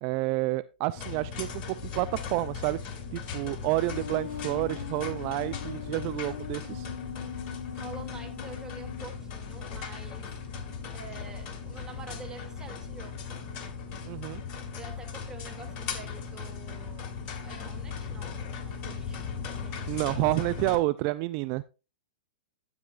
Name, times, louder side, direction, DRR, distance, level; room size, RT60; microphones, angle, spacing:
voice 1, 0.0-6.9 14.0-14.4 19.9-21.6, right 19 dB, 45° right, 0.4 m, -29 dB
sound 1, 1.0-20.8, left 6 dB, 40° left, 2.1 m, -38 dB
sound 2, 3.9-9.1, left 9 dB, 90° left, 0.9 m, -41 dB
voice 2, 7.7-10.4 10.9-13.3 14.8-20.2, right 3 dB, 15° right, 2.7 m, -47 dB
12.0 x 8.5 x 2.5 m
hypercardioid pair, 120°, 5 cm